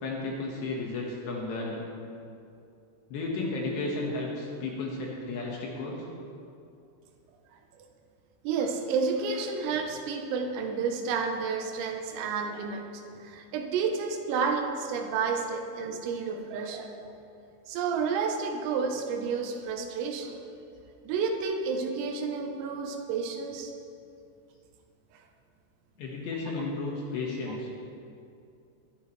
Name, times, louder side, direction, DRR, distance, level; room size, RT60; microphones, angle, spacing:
voice 1, 0.0-1.8 3.1-6.1 26.0-27.7, left 3 dB, 65° left, -2 dB, 3.3 m, -33 dB
voice 2, 8.5-12.8 13.2-17.1 17.7-20.4 21.1-23.7, right 5 dB, 80° right, 3 dB, 3.7 m, -30 dB
21.0 x 13.0 x 3.3 m, 2.6 s
omnidirectional pair, 6.0 m